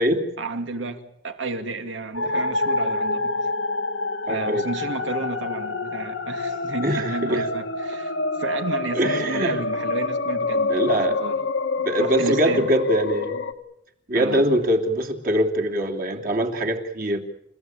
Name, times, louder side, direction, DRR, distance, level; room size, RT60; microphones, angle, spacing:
voice 1, 0.4-3.4 4.3-10.8 11.1-11.4 12.0-12.7 14.1-14.5, right 3 dB, 80° right, 2.4 m, -31 dB
sound 1, 2.1-13.5, left 3 dB, 85° left, 1.7 m, -27 dB
voice 2, 4.3-4.7 6.8-7.5 8.9-9.6 10.7-11.2 11.8-13.4 14.1-17.2, right 1 dB, 45° right, 2.9 m, -23 dB
29.5 x 16.0 x 8.9 m
head